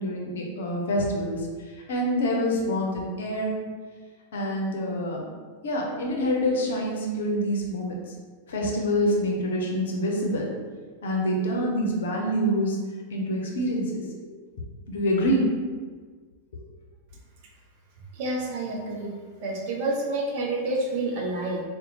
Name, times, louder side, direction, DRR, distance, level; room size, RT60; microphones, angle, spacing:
voice 1, 0.0-1.4 1.9-3.5 4.3-5.3 5.6-8.0 8.5-10.5 11.0-12.8 13.1-14.0 14.9-15.5, equal, 60° left, -1 dB, 0.6 m, -26 dB
voice 2, 18.1-19.1 19.4-21.6, right 2 dB, 50° right, -1 dB, 0.6 m, -28 dB
4.1 x 2.2 x 2.7 m, 1.5 s
figure-of-eight pair, 90°, 0 cm